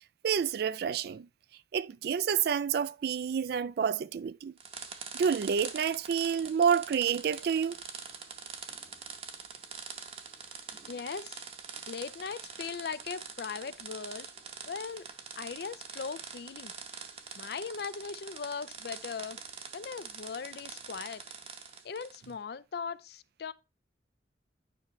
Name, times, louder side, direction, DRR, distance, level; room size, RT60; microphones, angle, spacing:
voice 1, 0.2-1.3 1.7-4.5 5.1-7.8, right 7 dB, 60° right, 0.3 m, -29 dB
sound 1, 4.6-22.3, right 6 dB, 35° right, 0.8 m, -45 dB
voice 2, 10.9-11.4 11.9-14.3 14.7-15.1 15.4-16.7 17.4-19.4 19.7-21.2 21.8-23.5, left 5 dB, 60° left, 0.4 m, -39 dB
9.7 x 5.2 x 3.1 m
head